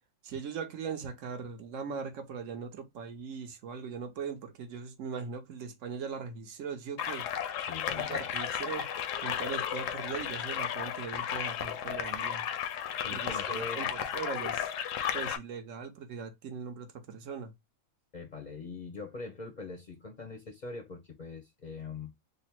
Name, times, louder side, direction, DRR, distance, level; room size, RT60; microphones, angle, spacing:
voice 1, 0.2-7.3 7.9-8.8 9.2-12.4 13.1-14.7 15.1-17.5, right 6 dB, 70° right, 1.0 m, -40 dB
sound 1, 7.0-15.4, left 9 dB, 70° left, 0.9 m, -34 dB
voice 2, 7.6-8.2 13.0-13.9 18.1-22.1, left 4 dB, 45° left, 0.6 m, -42 dB
3.3 x 2.0 x 4.2 m
omnidirectional pair, 1.4 m